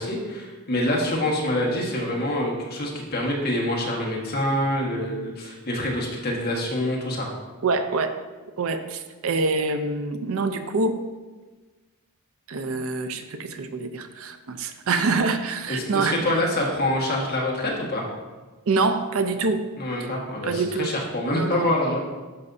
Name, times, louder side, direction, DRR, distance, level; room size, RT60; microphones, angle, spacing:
voice 1, 0.0-7.3 15.7-18.0 19.8-22.0, left 1 dB, 45° left, -2 dB, 1.5 m, -26 dB
voice 2, 7.6-8.2 8.6-11.0 12.5-16.4 18.7-19.7 20.0-20.1 20.4-20.9 21.3-21.7, right 3 dB, 65° right, 8 dB, 0.5 m, -25 dB
11.5 x 5.2 x 2.7 m, 1.3 s
head